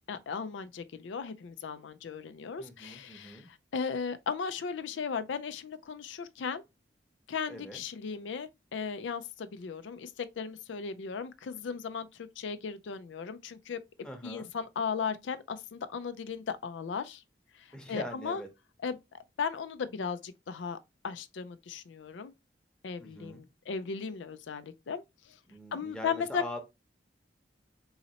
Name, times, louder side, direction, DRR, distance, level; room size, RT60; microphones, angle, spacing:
voice 1, 0.1-6.6 7.3-13.8 14.2-17.2 17.5-18.4 18.8-20.8 21.0-22.3 22.8-25.4 25.7-26.4, left 6 dB, 85° left, 0.4 m, -36 dB
voice 2, 2.6-3.5 7.5-7.8 14.0-14.5 17.7-18.5 23.0-23.4 25.5-26.6, equal, 5° left, 0.8 m, -43 dB
4.1 x 3.9 x 2.8 m
head